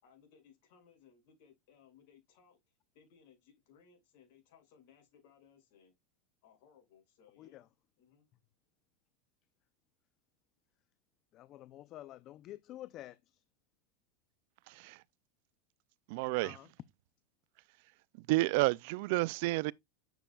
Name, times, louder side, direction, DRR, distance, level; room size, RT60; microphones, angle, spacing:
voice 1, 0.0-2.6 2.9-5.9 6.4-7.7 8.0-8.3, left 7 dB, 65° left, 5.8 m, -63 dB
voice 2, 11.3-13.4 16.4-16.7, left 14 dB, 45° left, 0.5 m, -49 dB
voice 3, 16.1-16.5 18.3-19.7, right 22 dB, 65° right, 0.3 m, -30 dB
9.1 x 7.2 x 2.3 m
hypercardioid pair, 115°, 0 cm